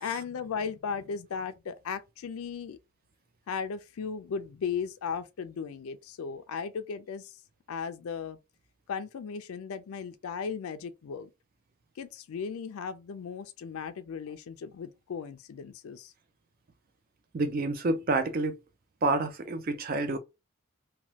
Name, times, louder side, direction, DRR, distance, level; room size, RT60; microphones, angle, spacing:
voice 1, 0.0-2.8 3.5-7.4 7.7-8.4 8.9-11.3 12.0-16.1, left 6 dB, 75° left, 0.4 m, -36 dB
voice 2, 17.3-18.6 19.0-20.2, right 2 dB, 40° right, 0.3 m, -28 dB
3.0 x 2.2 x 2.7 m
head